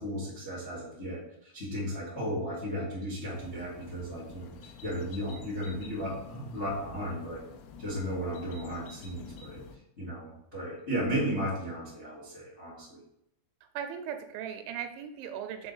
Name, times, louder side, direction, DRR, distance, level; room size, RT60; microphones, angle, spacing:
voice 1, 0.0-7.4 7.8-9.6 10.0-13.0, equal, 55° left, -7 dB, 0.7 m, -35 dB
sound 1, 3.3-9.8, left 5 dB, 85° left, 3.2 m, -49 dB
voice 2, 13.7-15.7, right 8 dB, 85° right, 5 dB, 2.9 m, -38 dB
6.8 x 4.5 x 4.0 m, 0.79 s
omnidirectional pair, 5.5 m